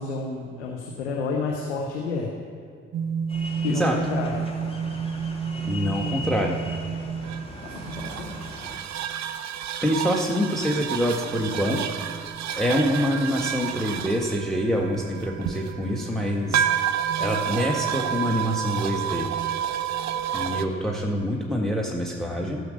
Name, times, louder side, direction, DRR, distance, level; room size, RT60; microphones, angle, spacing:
voice 1, 0.0-2.3 3.6-4.4 7.6-8.5, left 4 dB, 90° left, -1 dB, 1.0 m, -30 dB
sound 1, 2.9-20.7, right 8 dB, 55° right, 0.9 m, -30 dB
sound 2, 3.3-8.8, left 2 dB, 15° left, 2.6 m, -39 dB
voice 2, 5.6-6.6 9.8-11.9 12.6-16.7 17.2-19.3 20.3-22.6, equal, ahead, -1 dB, 1.8 m, -25 dB
16.0 x 6.3 x 6.6 m, 2.1 s
hypercardioid pair, 40°, 33 cm